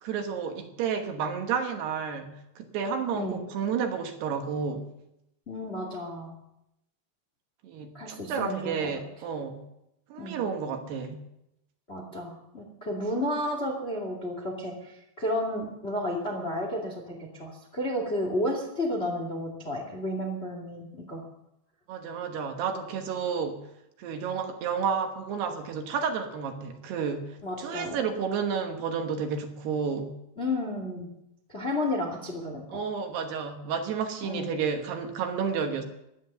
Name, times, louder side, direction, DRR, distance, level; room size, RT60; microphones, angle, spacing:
voice 1, 0.0-4.8 7.6-9.6 10.1-11.2 21.9-23.6 24.0-30.1 32.7-35.8, right 6 dB, 70° right, 5 dB, 3.0 m, -31 dB
voice 2, 5.5-6.3 7.9-8.7 10.2-10.4 11.9-21.2 27.4-28.0 30.4-31.1 31.5-32.8 34.2-34.5, left 1 dB, 25° left, 2 dB, 1.3 m, -32 dB
16.5 x 11.5 x 6.8 m, 0.84 s
omnidirectional pair, 5.4 m